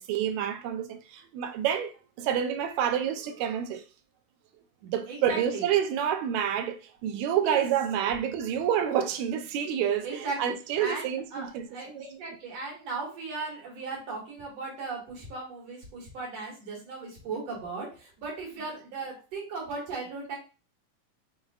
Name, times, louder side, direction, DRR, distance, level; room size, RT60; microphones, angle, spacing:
voice 1, 0.0-1.9 2.2-3.8 4.8-10.1 10.4-12.0, right 9 dB, 80° right, 1.9 m, -28 dB
voice 2, 5.1-5.7 7.3-7.6 10.0-20.4, right 4 dB, 60° right, 2.8 m, -37 dB
6.1 x 3.5 x 2.4 m
omnidirectional pair, 3.3 m